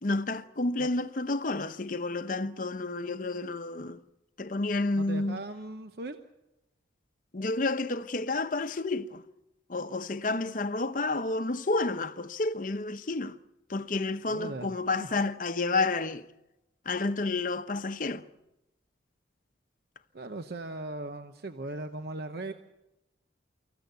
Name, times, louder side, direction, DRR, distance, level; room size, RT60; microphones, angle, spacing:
voice 1, 0.0-4.0 4.4-5.4 7.3-9.2 9.7-13.4 13.7-16.3 16.9-18.3, left 3 dB, 45° left, 0.8 m, -30 dB
voice 2, 5.0-6.2 14.3-14.8 15.0-15.1 20.1-22.5, right 2 dB, 60° right, 0.9 m, -38 dB
24.5 x 15.0 x 8.1 m
head